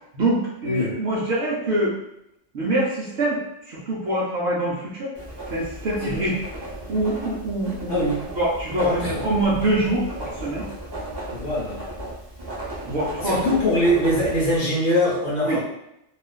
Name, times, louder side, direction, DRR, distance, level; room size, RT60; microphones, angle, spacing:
voice 1, 0.1-2.0 2.5-3.4 3.7-5.1 5.5-6.4 6.9-8.1 8.3-10.7 12.8-13.6 15.4-15.6, right 1 dB, 70° right, -5 dB, 0.8 m, -24 dB
Writing, 5.1-14.6, right 1 dB, 30° right, 0.5 m, -35 dB
voice 2, 7.9-8.2 8.8-9.2 11.3-11.8 13.2-15.6, equal, 55° left, -5 dB, 0.8 m, -22 dB
2.4 x 2.2 x 2.2 m, 0.84 s
omnidirectional pair, 1.2 m